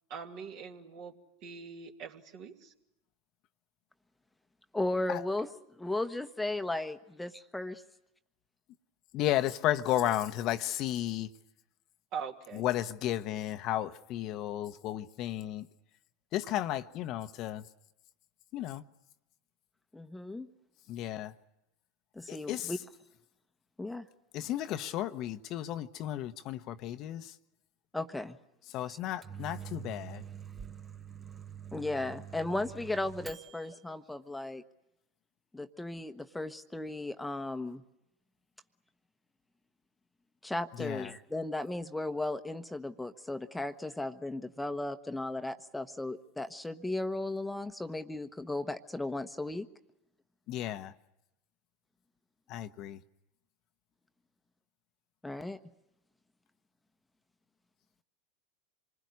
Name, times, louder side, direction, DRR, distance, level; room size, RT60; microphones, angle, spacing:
voice 1, 0.1-1.1 1.4-2.7 12.1-12.6, right 6 dB, 55° right, 2.7 m, -42 dB
voice 2, 4.7-5.5 5.8-7.8 19.9-20.5 22.1-22.8 23.8-24.1 27.9-28.4 28.9-29.0 31.7-34.6 35.5-37.8 40.4-49.7 55.2-55.6, left 2 dB, 5° left, 1.1 m, -36 dB
voice 3, 9.1-11.3 12.6-15.6 16.3-17.6 18.5-18.8 20.9-21.3 22.3-22.7 24.3-27.3 28.7-30.2 40.8-41.1 50.5-50.9 52.5-53.0, left 13 dB, 50° left, 1.0 m, -33 dB
Microwave oven, 29.0-33.8, right 8 dB, 25° right, 1.0 m, -46 dB
26.5 x 20.5 x 9.5 m
hypercardioid pair, 90°, 0 cm